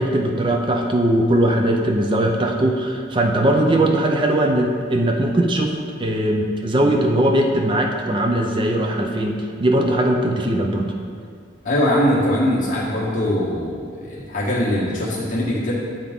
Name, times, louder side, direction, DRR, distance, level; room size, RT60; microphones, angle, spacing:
voice 1, 0.0-5.7 6.0-10.9, right 1 dB, 25° right, 2 dB, 0.4 m, -19 dB
voice 2, 11.6-15.7, left 1 dB, 40° left, -6 dB, 1.4 m, -21 dB
9.6 x 3.6 x 3.6 m, 2.1 s
head